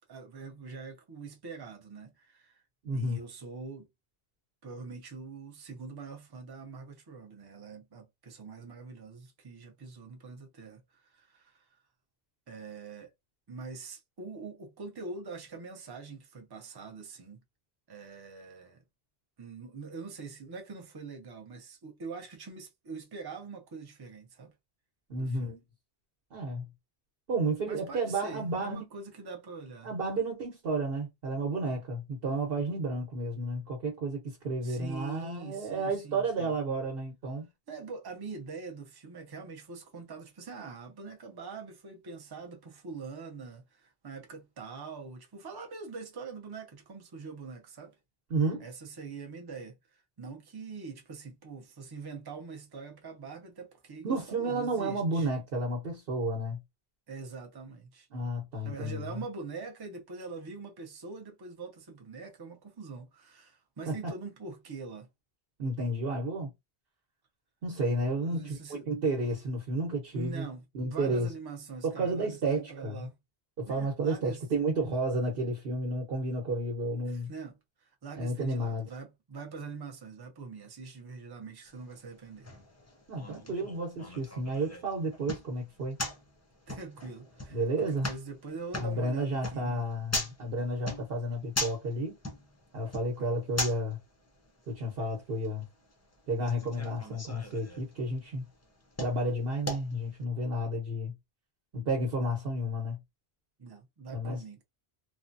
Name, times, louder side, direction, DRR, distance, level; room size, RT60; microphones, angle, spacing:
voice 1, 0.1-2.6 2.9-3.9 4.6-11.7 12.5-13.1 13.5-17.4 17.9-18.8 19.4-24.5 25.2-25.6 27.7-29.9 34.6-36.6 37.7-47.9 48.6-55.3 57.1-58.1 58.6-65.1 68.2-68.9 70.1-73.2 73.7-74.4 77.1-82.5 86.7-89.9 93.2-93.3 103.6-104.6, right 4 dB, 30° right, 0.5 m, -44 dB
voice 2, 2.8-3.2 25.1-25.6 26.3-26.6 27.3-28.8 29.8-37.5 48.3-48.6 54.0-56.6 58.1-59.2 63.9-64.1 65.6-66.5 67.6-70.4 70.7-71.3 71.8-73.1 73.6-77.3 78.2-78.9 83.1-86.0 87.5-88.1 88.8-92.1 92.7-94.0 94.7-95.7 96.3-98.4 99.0-101.1 101.7-103.0 104.1-104.4, right 1 dB, 65° right, 1.1 m, -31 dB
sound 1, 81.6-100.2, left 2 dB, 20° left, 0.4 m, -41 dB
3.2 x 2.1 x 2.6 m
omnidirectional pair, 1.1 m